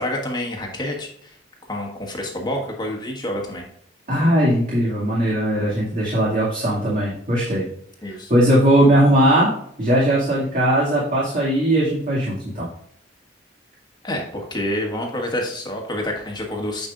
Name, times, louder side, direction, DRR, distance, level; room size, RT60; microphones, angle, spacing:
voice 1, 0.0-1.4 1.7-3.6 8.0-8.3 8.8-9.0 14.0-16.9, left 1 dB, 25° left, 0 dB, 1.5 m, -28 dB
voice 2, 4.1-7.6 8.1-9.5 9.8-12.7, right 1 dB, 45° right, -6 dB, 2.3 m, -19 dB
9.3 x 5.4 x 2.5 m, 0.67 s
head